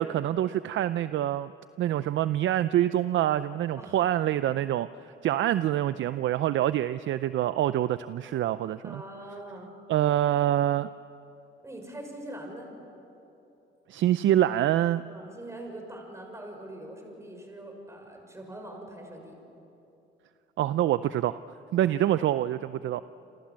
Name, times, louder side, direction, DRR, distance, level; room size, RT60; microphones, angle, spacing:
voice 1, 0.0-1.5 1.8-4.9 5.2-9.0 9.9-10.9 13.9-15.0 20.6-21.4 21.7-23.0, right 12 dB, 75° right, 14 dB, 0.6 m, -26 dB
voice 2, 8.8-9.7 11.6-12.7 15.0-19.4 22.1-22.6, right 1 dB, 15° right, 2 dB, 6.3 m, -43 dB
28.5 x 27.5 x 7.6 m, 2.9 s
cardioid pair, 90°, 20 cm